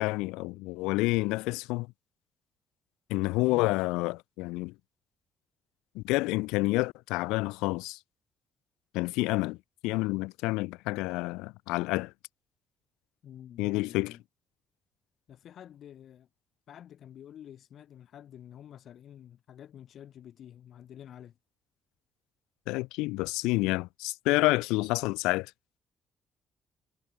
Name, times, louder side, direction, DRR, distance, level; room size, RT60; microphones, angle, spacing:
voice 1, 0.0-1.9 3.1-4.7 5.9-8.0 8.9-9.6 9.8-12.1 13.6-14.1 22.7-25.5, left 22 dB, 85° left, 0.5 m, -29 dB
voice 2, 3.4-3.7 13.2-14.2 15.3-16.3 16.7-21.4, left 10 dB, 65° left, 1.7 m, -49 dB
supercardioid pair, 60°, 0 cm